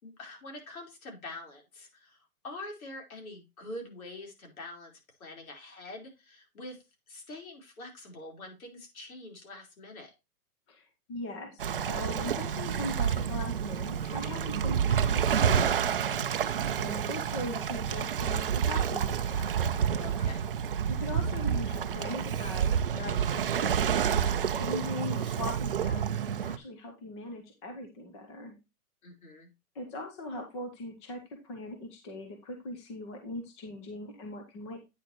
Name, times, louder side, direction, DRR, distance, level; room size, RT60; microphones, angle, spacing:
voice 1, 0.0-2.2 2.4-4.9 5.2-6.8 7.1-10.1 20.0-20.5 24.5-24.8 29.0-29.5, left 2 dB, 70° left, 2 dB, 4.4 m, -45 dB
voice 2, 10.7-16.5 16.8-19.5 20.9-23.9 24.5-28.6 29.7-34.8, left 1 dB, 20° left, 4 dB, 0.9 m, -40 dB
Waves surf, 11.6-26.6, right 8 dB, 40° right, 0.5 m, -29 dB
9.1 x 6.6 x 3.0 m, 0.24 s
hypercardioid pair, 170°, 44 cm